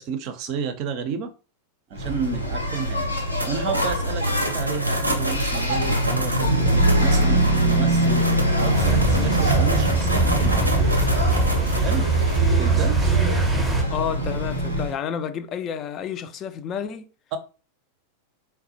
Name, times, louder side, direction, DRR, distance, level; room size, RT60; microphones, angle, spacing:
voice 1, 0.0-1.3 1.9-3.1 3.5-6.5 7.0-7.4 7.7-8.3 8.6-10.7 11.8-12.1 12.6-13.0 17.3-17.4, right 6 dB, 40° right, 0.5 m, -31 dB
Engine, 2.0-14.9, equal, 90° left, 0.9 m, -23 dB
sound 1, 3.2-12.4, right 1 dB, 85° right, 0.6 m, -30 dB
sound 2, 8.7-13.8, right 4 dB, 5° right, 0.7 m, -22 dB
voice 2, 13.9-17.1, left 8 dB, 30° left, 0.4 m, -30 dB
4.0 x 2.1 x 2.7 m
figure-of-eight pair, 90°, 0 cm